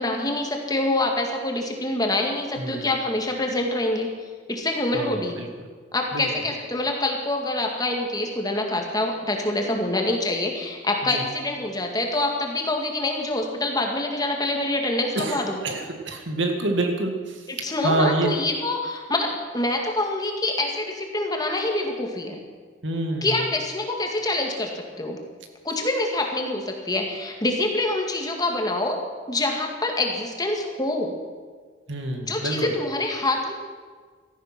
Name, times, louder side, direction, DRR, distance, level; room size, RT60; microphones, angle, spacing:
voice 1, 0.0-4.1 4.5-5.4 5.9-15.6 17.5-22.4 23.2-24.7 25.0-25.2 25.6-29.0 29.3-31.1 32.3-33.5, left 2 dB, 20° left, 2 dB, 2.1 m, -26 dB
voice 2, 4.9-5.5 6.1-6.3 11.0-11.2 15.1-18.3 22.8-23.4 31.9-32.7, right 2 dB, 70° right, 4 dB, 2.1 m, -27 dB
17.0 x 13.5 x 6.1 m, 1.5 s
head